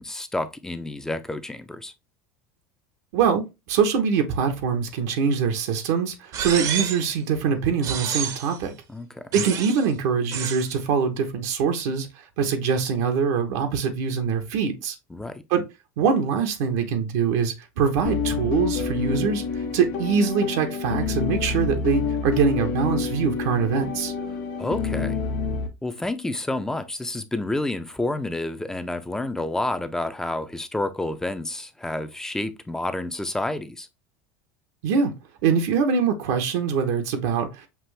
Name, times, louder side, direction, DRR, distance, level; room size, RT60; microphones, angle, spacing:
voice 1, 0.0-1.9 8.9-9.2 15.1-15.4 24.6-25.2 25.8-33.9, left 2 dB, 5° left, 0.6 m, -29 dB
voice 2, 3.1-8.7 9.3-12.1 12.4-14.9 15.5-15.6 16.0-19.4 19.7-24.1 34.8-35.1 35.4-37.7, right 6 dB, 75° right, 1.1 m, -23 dB
sound 1, 6.3-7.1 7.8-8.6 9.3-9.9 10.3-10.7, right 8 dB, 50° right, 0.9 m, -29 dB
sound 2, 18.0-25.7, left 5 dB, 70° left, 1.2 m, -28 dB
5.9 x 2.6 x 3.2 m
supercardioid pair, 110°, 8 cm